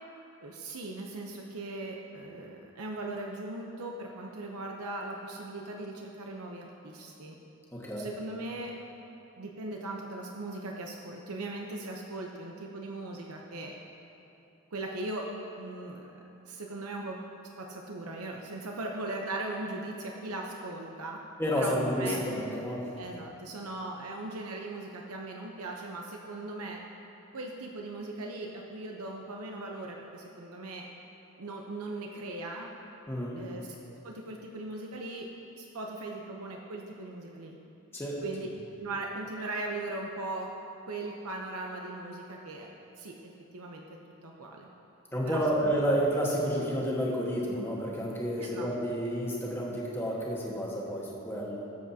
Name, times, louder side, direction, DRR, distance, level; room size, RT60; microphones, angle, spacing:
voice 1, 0.4-7.4 8.0-8.7 9.4-13.7 14.7-15.3 15.6-16.1 16.4-17.2 17.6-21.2 21.5-22.2 23.0-26.8 27.3-30.9 31.4-32.7 33.3-33.7 34.0-35.3 35.6-37.6 38.2-38.5 38.8-40.5 40.9-44.7 45.3-45.4 48.4-48.7, right 2 dB, 90° right, 0 dB, 0.8 m, -39 dB
voice 2, 7.7-8.1 21.4-23.0 33.1-33.4 37.9-38.2 45.1-51.6, equal, 10° left, -5 dB, 1.4 m, -30 dB
19.0 x 7.4 x 2.8 m, 2.9 s
head